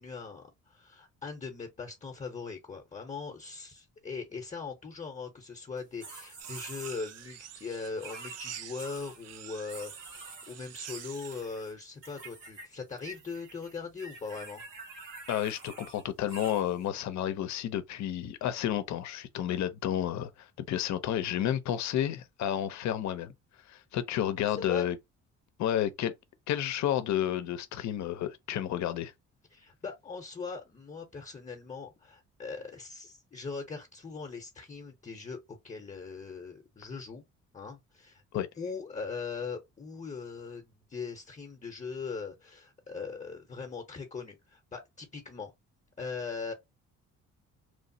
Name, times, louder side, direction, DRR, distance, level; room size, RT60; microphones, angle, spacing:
voice 1, 0.0-14.6 24.5-24.9 29.5-37.2 37.5-38.2 38.6-45.5 46.0-46.5, left 4 dB, 25° left, 0.7 m, -40 dB
sound 1, 5.8-7.2 8.0-9.4 9.7-11.7 12.0-12.7 12.9-16.8, right 3 dB, 90° right, 1.5 m, -47 dB
sound 2, 6.4-11.4, right 10 dB, 55° right, 0.5 m, -47 dB
voice 2, 15.3-23.3 23.7-25.0 25.6-26.1 26.5-29.1 38.3-38.5, left 11 dB, 65° left, 0.6 m, -31 dB
3.1 x 2.0 x 2.6 m
cardioid pair, 90°, 30 cm